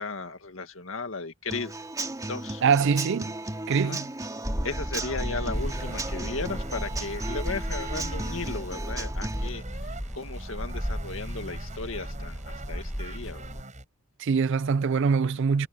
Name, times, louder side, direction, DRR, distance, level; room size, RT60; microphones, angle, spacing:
voice 1, 0.0-1.7 2.3-2.6 3.7-4.0 4.6-13.6, left 3 dB, 70° left, 2.2 m, -36 dB
Human voice / Acoustic guitar / Drum, 1.5-9.5, right 2 dB, 15° right, 2.6 m, -36 dB
voice 2, 2.6-3.3 3.7-4.1 14.2-15.7, right 5 dB, 65° right, 0.4 m, -23 dB
sound 1, 4.4-13.6, equal, ahead, 1.4 m, -34 dB
sound 2, 5.5-13.9, right 2 dB, 35° right, 5.9 m, -44 dB
head